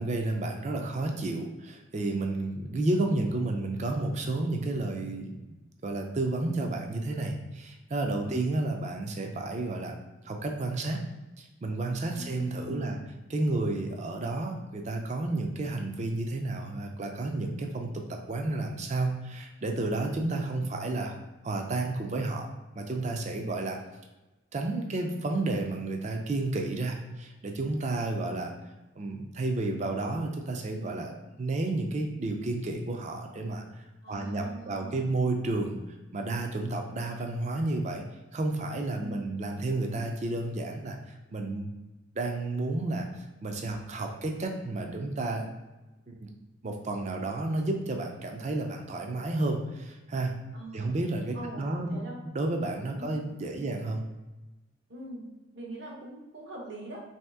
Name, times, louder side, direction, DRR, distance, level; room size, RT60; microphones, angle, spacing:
voice 1, 0.0-5.4 5.8-10.0 10.2-11.0 11.4-13.0 13.3-21.2 21.4-23.8 24.5-28.5 29.0-31.1 31.4-35.8 36.1-38.0 38.3-41.7 42.2-45.5 46.1-46.3 46.6-50.3 50.7-52.1 52.3-54.0, right 2 dB, 40° right, 3 dB, 0.4 m, -31 dB
voice 2, 12.1-13.0 34.0-35.0 39.0-39.3 50.5-50.9 51.3-52.2 52.9-53.2 53.5-53.6 54.9-55.2 55.5-57.0, right 1 dB, 70° right, -2 dB, 0.9 m, -42 dB
3.1 x 2.8 x 3.4 m, 1.1 s
head